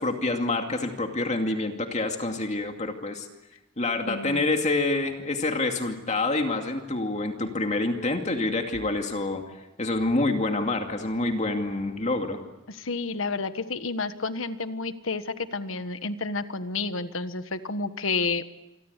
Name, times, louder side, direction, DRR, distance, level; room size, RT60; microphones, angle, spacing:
voice 1, 0.0-3.3 3.8-9.4 9.8-12.4, left 2 dB, 35° left, 4 dB, 2.4 m, -27 dB
voice 2, 4.1-4.5 12.7-18.4, left 3 dB, 75° left, 11 dB, 1.4 m, -30 dB
28.0 x 24.0 x 8.3 m, 0.95 s
head